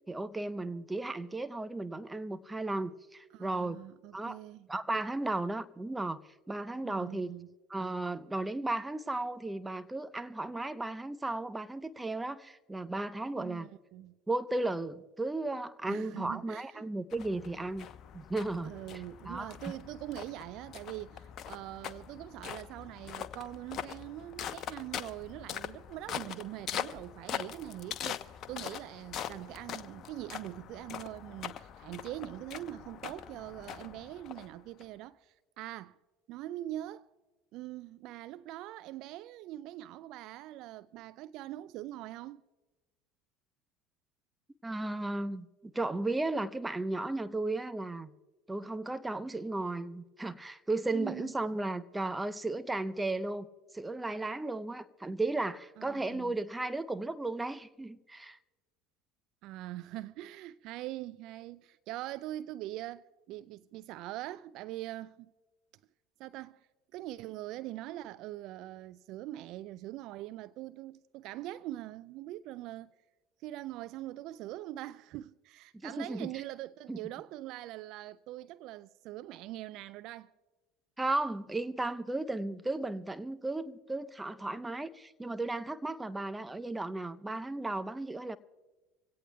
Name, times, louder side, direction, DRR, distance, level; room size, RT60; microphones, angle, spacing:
voice 1, 0.1-3.8 4.1-4.4 4.7-6.2 6.5-7.3 7.7-13.7 14.3-17.9 18.1-18.7 19.2-19.5 44.6-45.5 45.7-48.1 48.5-53.5 53.7-58.4 75.8-76.3 76.9-77.0 81.0-88.4, right 2 dB, 10° right, 0.8 m, -35 dB
voice 2, 3.3-4.7 6.8-7.5 13.3-14.2 15.9-16.9 18.6-36.0 36.3-37.1 37.5-42.4 50.9-51.3 55.8-56.3 59.4-65.3 66.2-72.9 73.4-80.3, right 15 dB, 55° right, 0.3 m, -43 dB
sound 1, 17.1-34.8, left 9 dB, 50° left, 0.8 m, -42 dB
26.0 x 17.0 x 2.3 m
hypercardioid pair, 70°, 0 cm